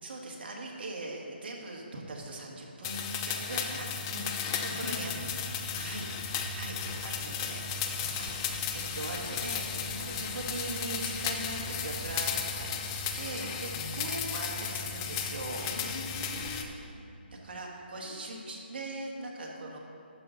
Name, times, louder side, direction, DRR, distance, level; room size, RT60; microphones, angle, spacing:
voice 1, 0.0-4.3 4.7-5.1 5.8-7.6 8.2-8.3 8.9-12.8 13.2-15.6 17.3-19.8, right 2 dB, 60° right, -1 dB, 1.9 m, -40 dB
sound 1, 2.8-16.6, left 7 dB, 25° left, 0.6 m, -35 dB
voice 2, 4.7-5.3 5.7-6.1 9.8-10.3 13.7-14.2 15.7-16.7 18.0-18.1, left 2 dB, 65° left, -3 dB, 2.4 m, -44 dB
sound 2, 5.2-16.7, right 3 dB, 30° right, 0.7 m, -47 dB
12.0 x 6.6 x 4.0 m, 2.6 s
hypercardioid pair, 155°, 6 cm